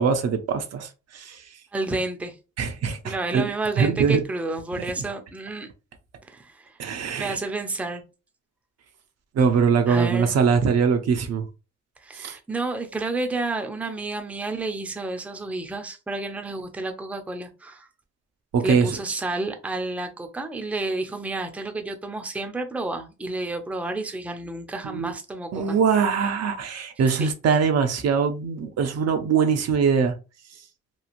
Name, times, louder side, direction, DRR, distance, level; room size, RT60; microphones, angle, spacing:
voice 1, 0.0-1.4 2.6-3.5 3.8-4.2 4.8-4.9 6.8-7.4 9.4-11.5 12.2-12.3 18.5-19.0 24.8-25.1 25.5-30.1, right 6 dB, 55° right, 0.6 m, -22 dB
voice 2, 1.7-2.4 3.0-5.7 6.3-6.8 7.2-8.0 9.9-10.3 12.0-17.9 18.6-25.8 27.1-27.3, right 2 dB, 5° right, 0.5 m, -30 dB
3.0 x 2.4 x 2.5 m
cardioid pair, 90°, 30 cm